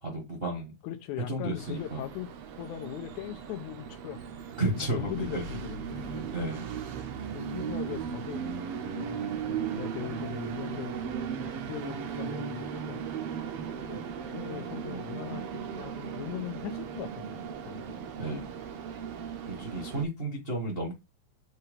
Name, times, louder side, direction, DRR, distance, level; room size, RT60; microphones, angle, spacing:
voice 1, 0.0-0.8 1.3-2.0 4.6-5.4 6.3-6.7 18.2-18.5 19.5-20.9, right 2 dB, 35° right, 1.0 m, -32 dB
voice 2, 0.8-2.3 2.6-4.3 4.9-6.3 7.3-8.4 8.9-11.3 11.6-13.5 13.8-17.9, left 12 dB, 85° left, 2.2 m, -40 dB
Train, 1.6-20.0, right 7 dB, 65° right, 1.6 m, -37 dB
7.8 x 2.9 x 5.1 m
omnidirectional pair, 3.3 m